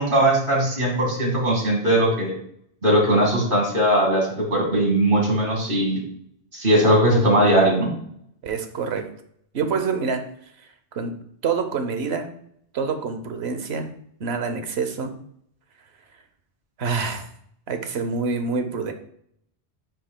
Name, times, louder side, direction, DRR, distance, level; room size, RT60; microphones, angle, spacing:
voice 1, 0.0-2.3 2.8-6.0 6.5-7.9, right 1 dB, 55° right, -1 dB, 2.1 m, -19 dB
voice 2, 8.4-9.1 9.5-10.2 10.9-11.2 11.4-12.3 12.7-13.9 14.2-15.1 16.8-17.3 17.7-18.9, right 5 dB, 75° right, 7 dB, 1.1 m, -26 dB
8.9 x 5.5 x 2.2 m, 0.68 s
omnidirectional pair, 1.1 m